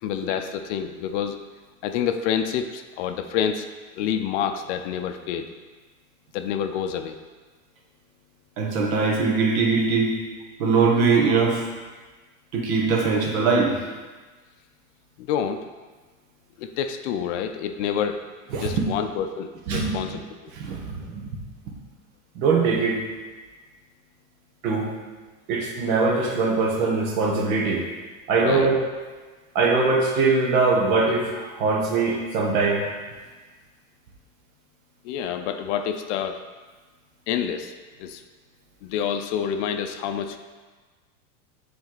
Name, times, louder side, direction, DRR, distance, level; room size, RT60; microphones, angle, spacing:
voice 1, 0.0-1.4 1.8-3.7 3.9-5.5 6.3-7.2 15.2-15.6 16.6-18.2 18.5-20.5 28.4-28.7 35.0-36.4 37.3-38.2 38.8-40.4, left 8 dB, 55° left, 8 dB, 0.5 m, -28 dB
voice 2, 8.6-10.2 10.6-11.7 12.5-13.8 18.5-18.8 19.7-20.0 20.6-21.3 21.7-21.8 22.3-23.0 24.6-24.9 25.5-27.8 28.3-28.7 29.5-32.8, right 4 dB, 65° right, 0 dB, 1.4 m, -22 dB
7.0 x 3.4 x 4.0 m, 1.4 s
supercardioid pair, 130°, 43 cm